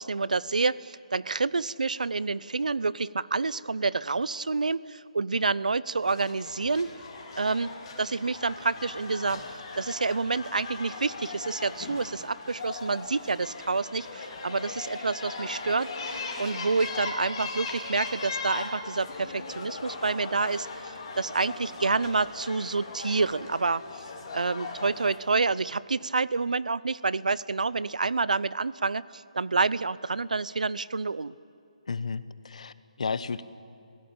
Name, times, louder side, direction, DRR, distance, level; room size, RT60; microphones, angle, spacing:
voice 1, 0.0-6.9 7.4-9.4 9.8-24.0 24.3-31.3, right 4 dB, 90° right, 19 dB, 0.7 m, -28 dB
sound 1, 6.0-25.2, left 3 dB, 35° left, 4.0 m, -39 dB
voice 2, 31.9-33.4, left 5 dB, 60° left, 15 dB, 1.1 m, -33 dB
29.0 x 16.5 x 8.8 m, 2.7 s
hypercardioid pair, 165°, 4 cm